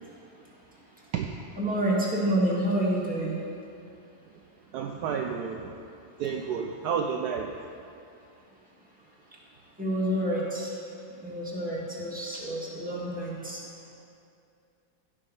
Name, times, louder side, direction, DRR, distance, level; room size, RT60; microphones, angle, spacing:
voice 1, 0.7-1.1 1.6-3.4 9.3-9.4 9.8-10.8 11.2-13.6, right 1 dB, 5° right, -6 dB, 1.9 m, -29 dB
voice 2, 4.7-5.8 6.2-7.5, right 7 dB, 70° right, 3 dB, 1.0 m, -31 dB
16.0 x 5.4 x 5.5 m, 2.5 s
omnidirectional pair, 2.0 m